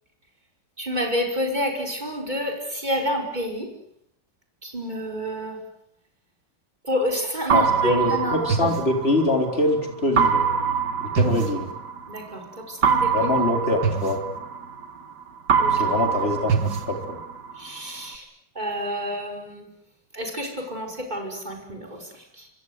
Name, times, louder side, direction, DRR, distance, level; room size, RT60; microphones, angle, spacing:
voice 1, 0.8-3.7 4.6-5.6 6.8-8.5 11.2-11.3 12.1-13.3 15.6-15.9 17.6-18.3 18.6-19.7 20.1-22.5, equal, 25° right, 2 dB, 5.7 m, -29 dB
voice 2, 7.5-10.5 11.0-11.7 13.1-14.2 15.7-17.2, left 2 dB, 35° left, 3 dB, 4.4 m, -24 dB
sound 1, 7.5-9.6 10.2-12.2 12.8-15.1 15.5-17.6, right 6 dB, 70° right, 2.1 m, -23 dB
26.0 x 25.5 x 8.2 m, 0.74 s
omnidirectional pair, 1.9 m